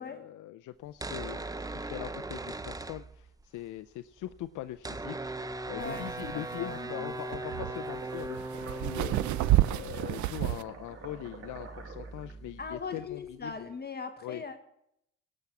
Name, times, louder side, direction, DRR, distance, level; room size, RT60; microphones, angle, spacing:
voice 1, 0.0-1.4 1.7-13.6 14.2-14.4, left 14 dB, 80° left, 10 dB, 0.5 m, -42 dB
sound 1, 0.9-3.6 3.9-4.0 4.1-13.6, right 2 dB, 10° right, 0.6 m, -40 dB
voice 2, 5.7-6.1 6.3-7.1 12.6-14.6, left 4 dB, 35° left, 7 dB, 1.3 m, -40 dB
sound 2, 5.8-10.6, right 15 dB, 75° right, 0.6 m, -30 dB
sound 3, 6.7-12.3, right 4 dB, 45° right, 2.4 m, -47 dB
17.5 x 6.1 x 7.1 m, 0.76 s
cardioid pair, 90°, 30 cm